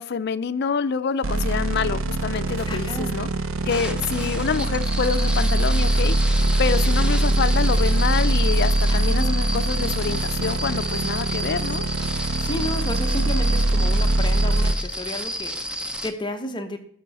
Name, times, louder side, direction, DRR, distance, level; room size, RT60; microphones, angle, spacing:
voice 1, 0.0-3.3 3.7-6.2 6.6-11.8, left 6 dB, 55° left, 0.4 m, -26 dB
sound 1, 1.2-14.7, right 2 dB, 75° right, 0.6 m, -22 dB
sound 2, 2.5-2.8 4.2-4.4 5.8-6.2 7.6-8.0, left 1 dB, 40° right, 4.0 m, -37 dB
voice 2, 2.7-3.1 4.3-4.4 8.9-9.4 12.4-16.8, left 1 dB, 20° left, 0.9 m, -32 dB
sound 3, 3.7-16.1, equal, 5° right, 0.6 m, -31 dB
12.0 x 6.7 x 4.1 m
head